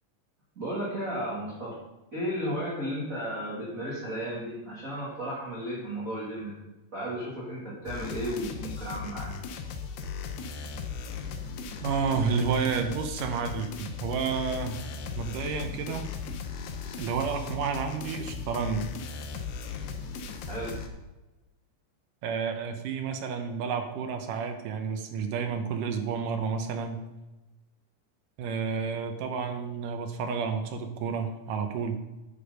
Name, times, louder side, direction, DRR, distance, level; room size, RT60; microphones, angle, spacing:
voice 1, 0.6-1.8 2.1-6.6 6.9-9.4 20.5-20.8, equal, 25° right, -6 dB, 1.9 m, -34 dB
sound 1, 7.9-20.9, left 5 dB, 80° left, 3.0 m, -37 dB
voice 2, 11.8-14.8 15.2-16.1 17.0-18.9 22.2-27.0 28.4-32.0, right 6 dB, 75° right, 5 dB, 2.0 m, -30 dB
11.5 x 7.1 x 5.2 m, 1.1 s
omnidirectional pair, 4.6 m